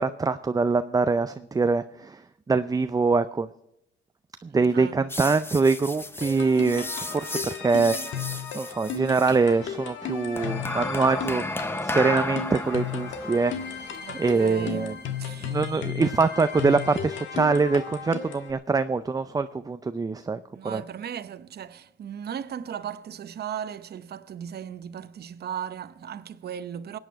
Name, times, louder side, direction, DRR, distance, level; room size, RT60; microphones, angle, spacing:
voice 1, 0.0-2.2 2.5-3.5 4.4-11.4 11.8-13.9 14.2-14.9 15.4-20.8, right 4 dB, 20° right, 0.4 m, -24 dB
voice 2, 4.5-5.1 14.0-15.6 20.5-27.0, right 9 dB, 55° right, 0.8 m, -37 dB
sound 1, 5.1-9.4 10.4-15.7, left 2 dB, 10° left, 0.8 m, -34 dB
sound 2, 6.2-18.5, left 8 dB, 75° left, 1.5 m, -35 dB
23.5 x 9.0 x 4.6 m
cardioid pair, 90°, 20 cm